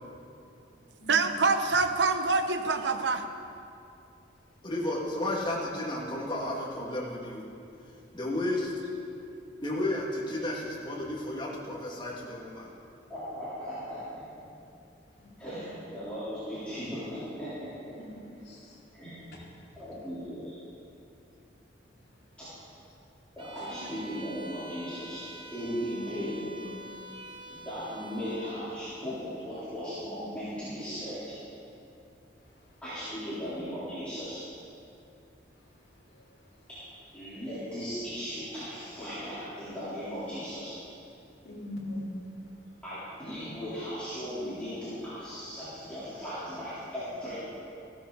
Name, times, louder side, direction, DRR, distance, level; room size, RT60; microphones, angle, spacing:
voice 1, 1.1-3.2, right 4 dB, 70° right, 7 dB, 0.8 m, -25 dB
voice 2, 4.6-7.5 8.1-8.7 9.6-12.7, left 1 dB, 25° left, -4 dB, 2.1 m, -32 dB
voice 3, 13.1-14.5 15.4-17.9 18.9-19.2 19.8-20.6 22.4-22.5 23.4-25.2 25.5-26.4 27.5-31.3 32.8-34.4 37.1-40.7 42.8-47.5, equal, 5° left, -15 dB, 3.6 m, -37 dB
voice 4, 18.4-18.8 19.3-19.5 23.7-23.8 25.9-27.7 32.4-32.8 33.2-33.3 35.5-35.7 36.1-36.7 41.4-42.2, left 1 dB, 60° left, -7 dB, 2.8 m, -43 dB
Bowed string instrument, 23.4-28.7, right 1 dB, 25° right, 1.0 m, -46 dB
15.5 x 13.0 x 4.0 m, 2.6 s
head